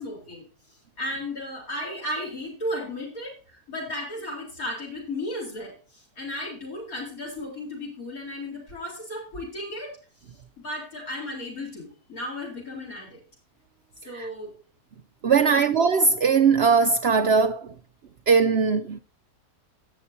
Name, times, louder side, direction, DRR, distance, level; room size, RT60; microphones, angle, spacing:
voice 1, 0.0-10.0 10.6-13.2 14.0-14.5 15.4-15.6, left 1 dB, 60° left, 4.5 m, -35 dB
voice 2, 15.2-17.7 18.3-19.0, right 5 dB, 65° right, 0.6 m, -20 dB
17.5 x 7.6 x 2.7 m
omnidirectional pair, 1.7 m